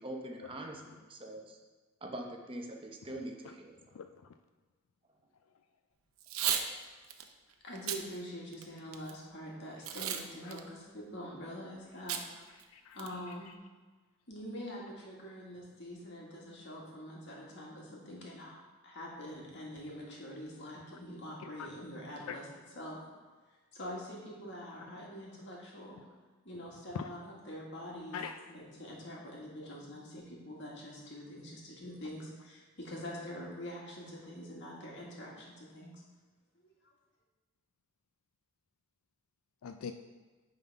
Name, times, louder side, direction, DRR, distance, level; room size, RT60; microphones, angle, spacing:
voice 1, 0.0-1.6 2.0-3.7, right 1 dB, 25° right, 1 dB, 0.7 m, -43 dB
voice 2, 3.9-4.3 12.7-13.0 21.6-21.7 22.3-22.4 26.9-27.1 28.1-28.4 39.6-39.9, left 6 dB, 80° left, 7 dB, 0.4 m, -41 dB
Packing tape duct tape / Tearing, 6.2-6.7 7.1-7.2 7.7-8.0 8.5-9.1 9.8-10.2 10.5-10.6 12.1-12.2 12.6-12.7 13.0-13.3, right 9 dB, 80° right, 0.6 m, -33 dB
voice 3, 7.6-12.2 12.5-13.5 14.3-18.6 18.8-23.0 23.7-26.0 26.4-28.2 28.5-36.0 36.6-36.7, equal, 55° left, -3 dB, 1.9 m, -45 dB
9.1 x 3.9 x 5.4 m, 1.3 s
head